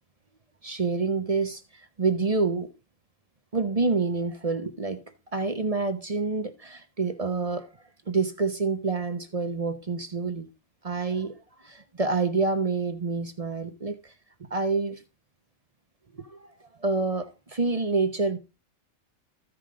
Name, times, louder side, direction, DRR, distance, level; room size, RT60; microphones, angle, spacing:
voice 1, 0.6-2.7 3.5-5.0 5.3-7.8 8.1-10.5 10.8-14.1 14.5-15.0 16.1-18.4, right 4 dB, 30° right, 0.8 m, -28 dB
14.5 x 5.2 x 3.8 m
omnidirectional pair, 1.5 m